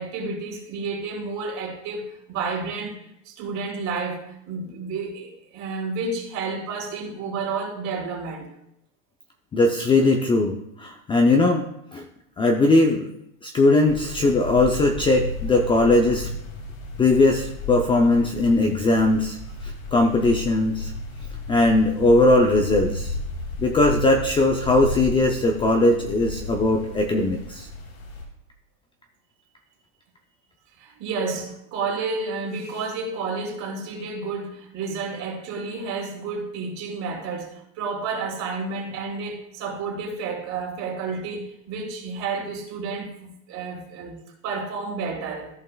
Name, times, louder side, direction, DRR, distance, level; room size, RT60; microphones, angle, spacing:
voice 1, 0.0-3.0 3.2-8.5 30.8-44.2 44.4-45.5, right 4 dB, 45° right, -1 dB, 3.2 m, -31 dB
voice 2, 9.5-11.7 11.9-12.1 12.4-13.1 13.4-16.3 17.0-19.4 19.6-20.9 21.5-23.2 23.6-27.7, left 2 dB, 15° left, 3 dB, 0.4 m, -19 dB
sound 1, 13.9-28.2, left 2 dB, 80° left, 2.4 m, -33 dB
14.0 x 5.4 x 2.3 m, 0.78 s
supercardioid pair, 130°, 40 cm